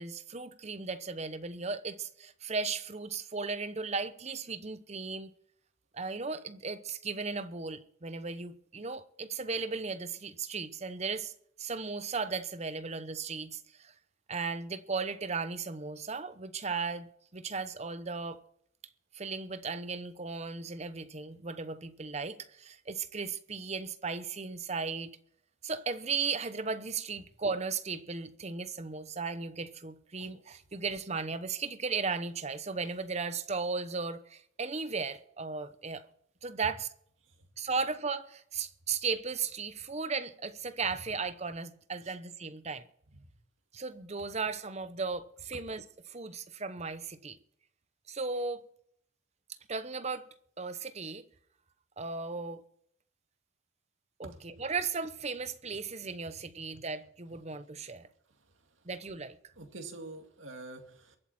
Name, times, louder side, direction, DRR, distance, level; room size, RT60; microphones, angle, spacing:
voice 1, 0.0-5.3 5.9-11.3 11.6-13.9 14.3-18.4 19.1-25.1 25.6-36.1 36.4-36.9 37.6-42.9 43.7-47.4 48.1-48.6 49.7-50.3 50.6-51.2 52.0-52.6 54.2-58.1 58.8-59.4, right 4 dB, 35° right, 0.9 m, -36 dB
voice 2, 59.6-61.2, right 2 dB, 85° right, 2.3 m, -45 dB
23.5 x 8.4 x 4.3 m
head